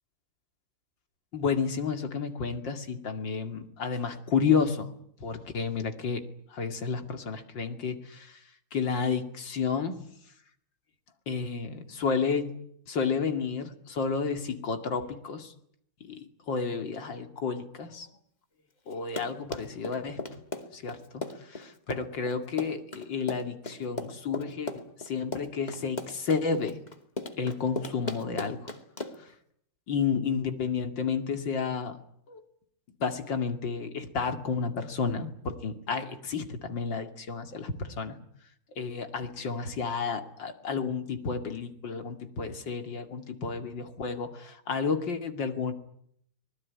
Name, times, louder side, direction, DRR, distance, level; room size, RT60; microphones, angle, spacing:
voice 1, 1.3-4.9 5.2-6.2 6.5-8.4 8.7-10.0 11.3-12.6 12.9-15.5 16.0-18.1 18.9-20.2 20.7-26.8 27.4-28.6 29.9-32.0 32.3-32.4 33.0-38.2 38.8-45.7, left 5 dB, 85° left, 8 dB, 3.1 m, -31 dB
Run, 18.9-29.3, left 2 dB, 25° left, 2.5 m, -37 dB
25.0 x 20.0 x 9.7 m, 0.70 s
omnidirectional pair, 2.0 m